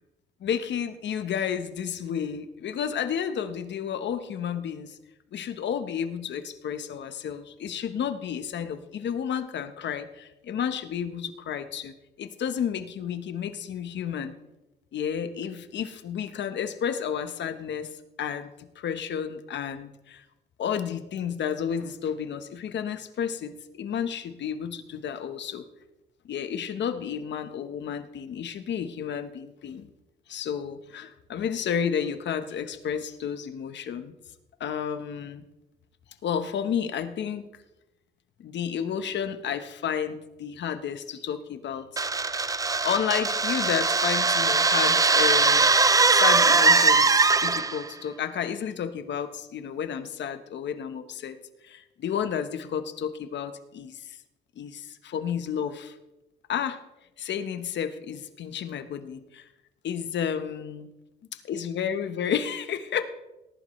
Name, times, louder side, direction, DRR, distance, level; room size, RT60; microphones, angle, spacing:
voice 1, 0.4-5.0 5.3-14.4 14.9-20.2 20.6-25.6 26.2-29.9 30.3-34.1 34.6-35.4 36.2-37.5 38.4-42.0 42.8-45.7 46.1-51.4 51.6-54.2 54.6-56.0 56.5-56.8 57.2-59.5 59.8-60.9 61.5-63.0, left 8 dB, 65° left, 9 dB, 1.1 m, -31 dB
sound 1, 42.0-47.9, right 4 dB, 15° right, 0.5 m, -21 dB
19.0 x 11.0 x 3.2 m, 0.97 s
cardioid pair, 90°, 20 cm